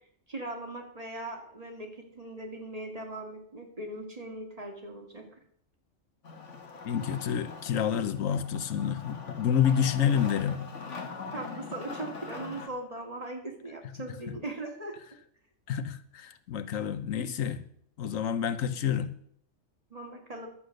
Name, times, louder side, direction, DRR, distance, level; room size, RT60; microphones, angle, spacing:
voice 1, 0.3-5.2 11.3-14.9 19.9-20.5, right 2 dB, 30° right, 2.3 m, -39 dB
Wood, 6.2-12.7, left 4 dB, 65° left, 1.9 m, -42 dB
voice 2, 6.8-10.6 15.7-17.6 18.0-19.1, left 8 dB, 85° left, 1.3 m, -28 dB
11.5 x 8.3 x 6.5 m
omnidirectional pair, 1.3 m